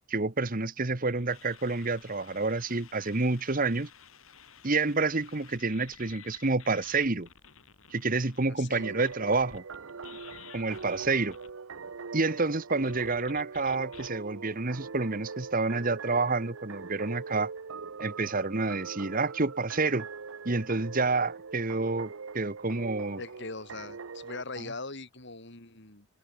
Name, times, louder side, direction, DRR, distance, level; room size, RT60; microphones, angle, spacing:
voice 1, 0.1-3.9 4.6-7.3 7.9-9.6 10.5-11.4 12.1-17.5 18.0-20.1 20.4-23.2, right 3 dB, 40° right, 1.3 m, -29 dB
sound 1, 1.0-8.4 9.0-11.5 12.8-14.1, left 7 dB, 80° left, 3.9 m, -52 dB
voice 2, 8.5-9.0 10.9-11.2 23.2-26.1, left 3 dB, 55° left, 3.9 m, -41 dB
sound 2, 8.7-24.4, right 5 dB, 70° right, 0.8 m, -42 dB
head